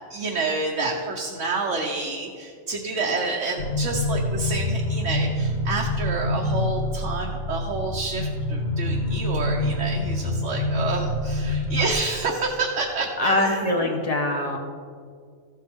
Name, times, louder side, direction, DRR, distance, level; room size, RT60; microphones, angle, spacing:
voice 1, 0.1-13.9, right 3 dB, 70° right, -1 dB, 1.2 m, -28 dB
sound 1, 3.6-11.9, left 1 dB, 60° left, 1.2 m, -26 dB
voice 2, 13.2-14.6, left 2 dB, 30° left, 2 dB, 1.2 m, -23 dB
14.5 x 7.5 x 3.6 m, 2.1 s
omnidirectional pair, 1.3 m